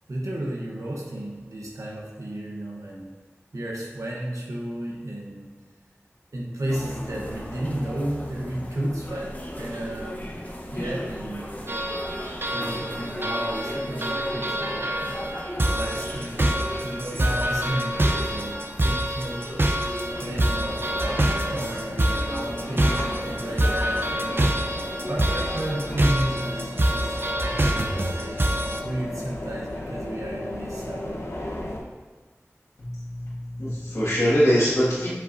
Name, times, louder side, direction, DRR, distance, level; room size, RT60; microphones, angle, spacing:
voice 1, 0.1-3.1 3.5-5.5 6.3-10.2 10.7-11.6 12.5-15.1 15.7-19.5 20.2-24.5 25.1-28.4 28.8-31.2, right 1 dB, 90° right, -3 dB, 1.0 m, -33 dB
Walking through Bond Street Station London Underground, 6.7-26.0, equal, 30° left, 1.0 m, -37 dB
sound 1, 11.7-28.8, right 1 dB, 45° right, 0.6 m, -26 dB
sound 2, 20.0-31.8, left 1 dB, 55° left, 1.0 m, -36 dB
voice 2, 32.8-35.1, equal, 80° left, -12 dB, 1.7 m, -23 dB
7.5 x 5.6 x 2.6 m, 1.4 s
wide cardioid pair, 45°, 5 cm